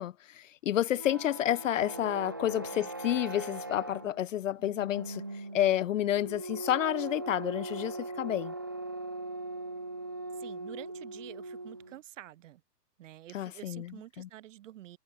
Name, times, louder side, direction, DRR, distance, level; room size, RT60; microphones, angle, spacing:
voice 1, 0.0-5.2 5.5-8.5 13.3-13.9 14.2-14.3, left 12 dB, 50° left, 0.8 m, -30 dB
sound 1, 0.7-12.0, right 2 dB, 15° right, 0.4 m, -40 dB
voice 2, 10.3-12.6 13.0-15.0, right 13 dB, 45° right, 3.3 m, -48 dB
hypercardioid pair, 145°, 49 cm